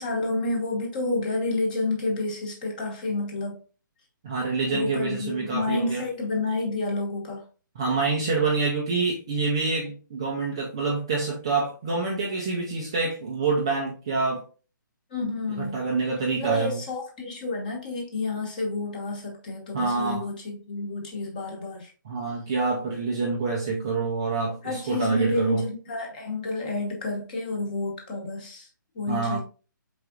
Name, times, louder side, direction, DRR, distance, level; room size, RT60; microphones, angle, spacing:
voice 1, 0.0-3.6 4.7-7.4 15.1-15.8 16.3-21.9 24.6-28.7 28.9-29.4, left 2 dB, 25° left, 1.0 m, -30 dB
voice 2, 4.2-6.0 7.8-14.4 15.6-16.8 19.7-20.2 22.1-25.7 29.1-29.4, right 4 dB, 15° right, 0.3 m, -26 dB
4.5 x 3.8 x 2.3 m
hypercardioid pair, 175°, 11 cm